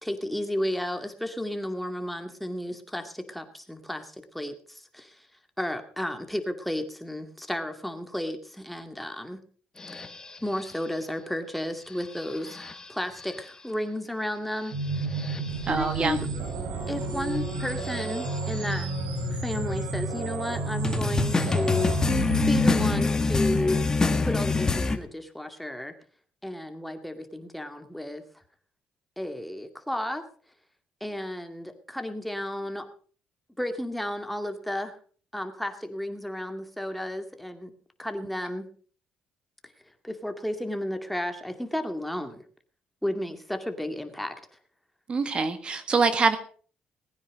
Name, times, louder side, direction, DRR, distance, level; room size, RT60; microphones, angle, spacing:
voice 1, 0.0-5.3 5.6-9.4 9.9-10.0 10.4-15.1 15.7-16.2 16.9-18.9 19.3-22.1 22.5-23.8 24.2-25.9 26.4-28.2 29.2-30.2 31.0-32.9 33.6-35.0 35.3-37.7 38.0-38.7 39.6-39.7 40.0-42.4 43.0-44.3, left 1 dB, 5° left, 6 dB, 2.3 m, -33 dB
sound 1, 9.8-10.7 12.0-12.9 13.2-13.4 14.7-16.1 17.3-18.7 20.8-25.0, left 3 dB, 25° left, 1.9 m, -27 dB
sound 2, 14.7-23.0, right 3 dB, 85° right, 4.7 m, -31 dB
voice 2, 15.6-16.2 45.1-46.4, right 4 dB, 40° right, 10 dB, 1.7 m, -24 dB
19.5 x 9.7 x 5.2 m, 0.43 s
cardioid pair, 85°, 3 cm